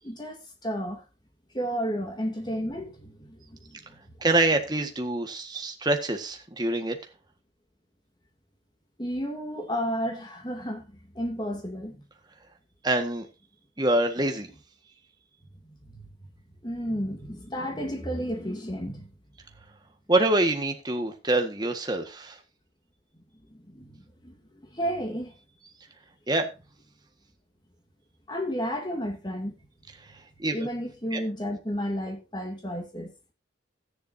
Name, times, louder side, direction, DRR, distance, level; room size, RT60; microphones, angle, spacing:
voice 1, 0.0-1.0 1.5-4.0 9.0-12.0 15.6-16.1 16.6-19.1 23.1-23.2 23.5-25.3 28.3-29.5 30.5-33.1, equal, 20° left, 2.7 m, -32 dB
voice 2, 4.2-7.0 12.8-13.3 13.8-14.5 20.1-22.4 26.3-26.5 30.4-30.7 31.1-31.2, right 2 dB, 20° right, 1.6 m, -25 dB
14.0 x 10.0 x 2.8 m
head